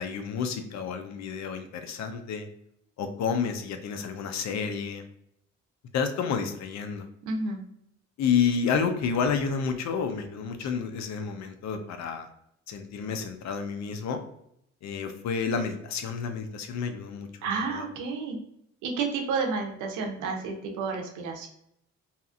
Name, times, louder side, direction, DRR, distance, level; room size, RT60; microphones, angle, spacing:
voice 1, 0.0-2.5 3.0-5.0 5.9-7.1 8.2-12.3 12.7-14.2 14.8-17.3 17.7-17.8, left 6 dB, 65° left, 7 dB, 0.5 m, -30 dB
voice 2, 7.2-7.6 17.4-18.4 18.8-21.5, right 4 dB, 90° right, 2 dB, 0.7 m, -30 dB
2.8 x 2.4 x 2.4 m, 0.74 s
cardioid pair, 90°, 30 cm